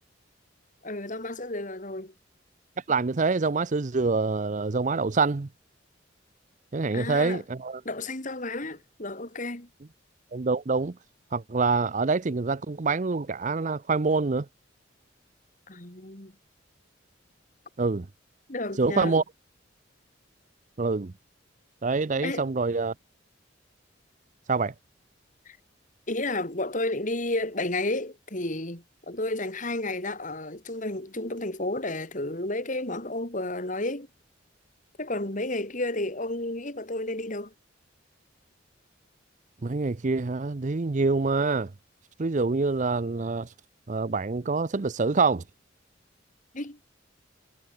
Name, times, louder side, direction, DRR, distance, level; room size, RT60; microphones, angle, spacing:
voice 1, 0.8-2.1 6.9-7.4 7.9-9.7 15.7-16.3 18.5-19.2 22.2-22.5 25.5-25.6 26.1-34.1 35.0-37.5 46.5-46.8, left 2 dB, 40° left, 3.5 m, -32 dB
voice 2, 2.9-5.5 6.7-7.8 10.3-11.0 11.3-14.5 17.8-18.1 18.8-19.2 20.8-21.1 21.8-22.9 24.5-24.7 39.6-41.7 42.2-43.5 43.9-45.4, right 4 dB, 40° right, 0.6 m, -26 dB
head